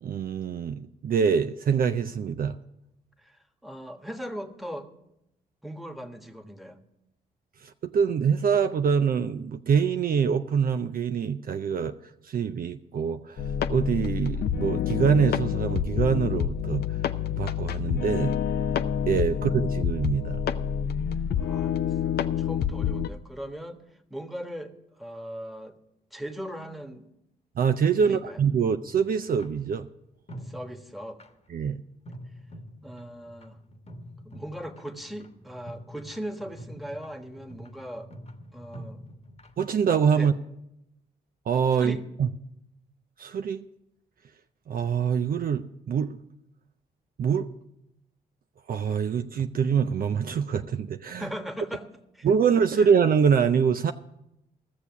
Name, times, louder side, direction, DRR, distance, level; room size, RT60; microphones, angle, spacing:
voice 1, 0.0-2.6 7.6-11.9 12.2-16.8 17.4-18.4 19.1-20.4 27.6-29.9 31.5-31.8 39.6-40.3 41.5-42.3 43.2-43.6 44.7-46.2 47.2-47.5 48.7-51.3 52.2-53.9, right 7 dB, 55° right, 8 dB, 0.5 m, -25 dB
voice 2, 3.2-4.9 5.6-6.8 19.3-19.4 21.4-21.8 22.0-23.8 24.1-25.7 26.1-27.1 28.0-28.4 30.4-31.2 32.8-33.6 34.2-38.1 38.5-39.0 40.1-40.3 41.8-42.0 51.2-51.9 52.1-52.3 52.6-52.9, equal, ahead, 5 dB, 1.4 m, -39 dB
sound 1, 13.4-23.1, left 8 dB, 60° left, 0.6 m, -28 dB
sound 2, 28.9-29.5 30.3-31.3 32.1-40.0, equal, 35° left, 1.3 m, -46 dB
14.0 x 6.8 x 7.2 m, 0.85 s
supercardioid pair, 50°, 18 cm